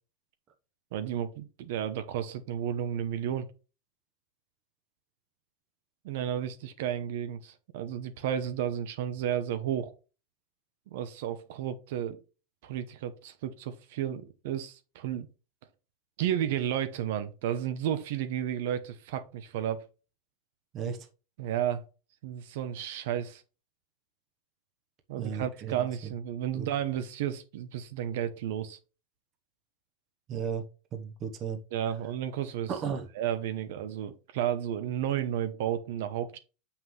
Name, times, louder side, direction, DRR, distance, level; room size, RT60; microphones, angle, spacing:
voice 1, 0.9-3.5 6.0-9.9 10.9-12.2 12.6-15.3 16.2-19.8 21.4-21.8 22.2-23.4 25.1-28.8 31.7-32.7 33.2-36.4, right 10 dB, 60° right, 0.8 m, -32 dB
voice 2, 25.2-25.7 26.5-26.7 30.3-30.7 30.9-31.6 32.7-33.1, right 7 dB, 25° right, 1.0 m, -34 dB
7.5 x 5.7 x 3.2 m
supercardioid pair, 170°, 0 cm